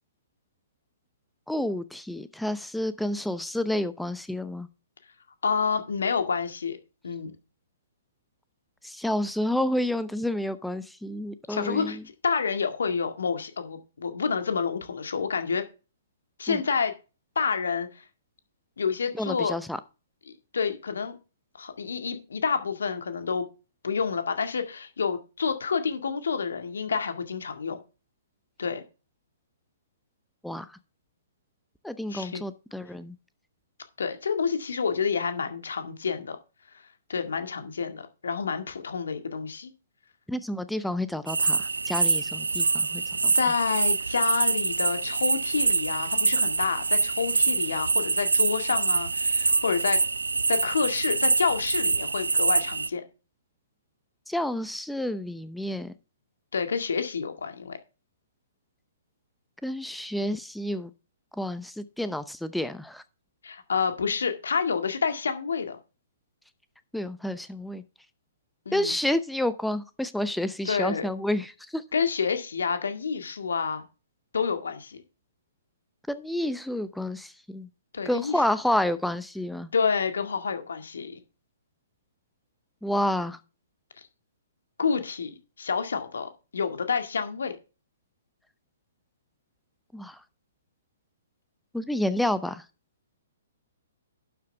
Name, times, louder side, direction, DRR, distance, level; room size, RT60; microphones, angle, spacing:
voice 1, 1.5-4.7 8.8-12.0 16.5-16.6 19.2-19.8 30.4-30.7 31.8-33.2 40.3-43.0 54.3-55.9 59.6-60.9 61.4-63.0 66.9-67.8 68.7-71.8 76.1-77.7 78.1-79.7 82.8-83.4 89.9-90.2 91.7-92.6, left 1 dB, ahead, 0.7 m, -29 dB
voice 2, 5.4-6.8 7.0-7.3 11.5-12.0 12.2-15.7 16.4-16.9 17.4-18.0 18.8-19.6 20.3-21.2 21.6-23.5 23.8-27.8 28.6-28.8 32.1-32.4 34.0-36.4 37.1-39.7 43.3-50.0 50.5-53.0 56.5-57.8 63.4-65.8 68.7-69.0 70.6-71.1 71.9-73.8 74.3-75.0 77.9-78.4 79.7-81.2 84.8-85.3 85.6-87.6, left 5 dB, 70° left, 1.9 m, -28 dB
sound 1, 41.3-52.9, right 4 dB, 80° right, 0.5 m, -25 dB
11.5 x 7.6 x 3.4 m
figure-of-eight pair, 120°, 0 cm